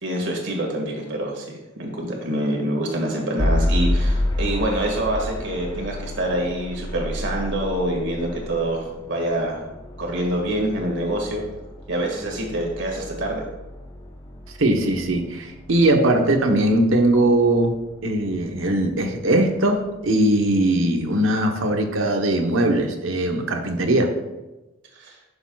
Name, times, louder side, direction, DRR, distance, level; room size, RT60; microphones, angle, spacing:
voice 1, 0.0-9.6 10.0-11.4 11.9-13.4 24.9-25.2, right 1 dB, 65° right, 0 dB, 2.0 m, -26 dB
sound 1, 3.4-19.3, left 1 dB, 20° left, 0.9 m, -30 dB
voice 2, 14.6-17.8 18.0-24.1, right 1 dB, 85° right, 3 dB, 1.1 m, -20 dB
11.5 x 6.8 x 2.4 m, 1.0 s
head